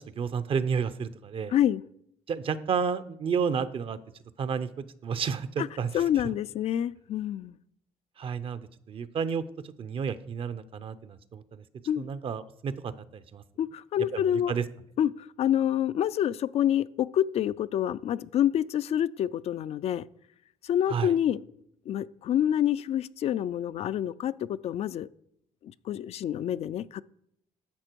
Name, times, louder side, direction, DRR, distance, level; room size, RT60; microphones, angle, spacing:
voice 1, 0.2-1.5 2.3-4.0 4.4-5.9 8.2-8.6 8.9-11.6 12.0-13.4 14.1-14.6 20.9-21.1, right 6 dB, 45° right, 0.6 m, -31 dB
voice 2, 1.5-1.8 5.6-5.7 5.9-7.6 11.9-12.1 13.6-14.5 15.0-20.0 20.6-21.4 21.9-25.1 25.6-27.0, left 10 dB, 55° left, 0.4 m, -27 dB
11.5 x 7.5 x 4.5 m
cardioid pair, 110°, 13 cm